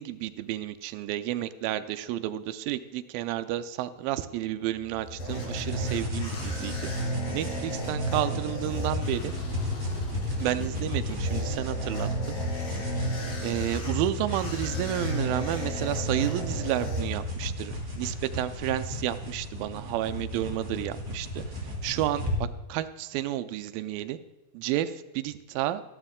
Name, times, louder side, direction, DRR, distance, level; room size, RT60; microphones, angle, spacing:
voice 1, 0.0-6.9 7.3-9.3 10.4-12.4 12.7-13.1 13.4-22.3 22.7-24.2 24.5-25.8, right 13 dB, 85° right, 10 dB, 2.1 m, -31 dB
sound 1, 4.6-17.6, right 1 dB, 50° left, 2.6 m, -34 dB
sound 2, 5.6-22.4, left 1 dB, 5° right, 1.8 m, -34 dB
13.5 x 11.5 x 3.7 m, 1.1 s
omnidirectional pair, 4.7 m